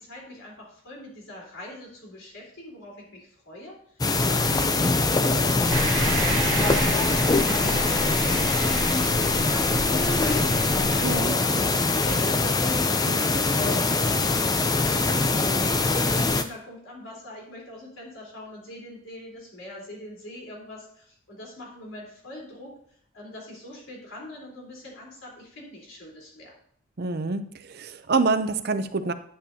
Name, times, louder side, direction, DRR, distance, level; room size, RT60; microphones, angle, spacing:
voice 1, 0.0-4.0 4.3-4.7 5.0-8.2 8.4-11.1 11.6-22.7 23.1-26.5, left 1 dB, 70° left, -2 dB, 3.8 m, -42 dB
sound 1, 4.0-16.4, left 3 dB, 20° left, 0.4 m, -23 dB
sound 2, 5.7-11.2, right 3 dB, 85° right, 1.3 m, -31 dB
voice 2, 11.0-11.3 27.0-29.1, right 4 dB, 50° right, 9 dB, 0.5 m, -26 dB
11.0 x 8.7 x 2.8 m, 0.63 s
head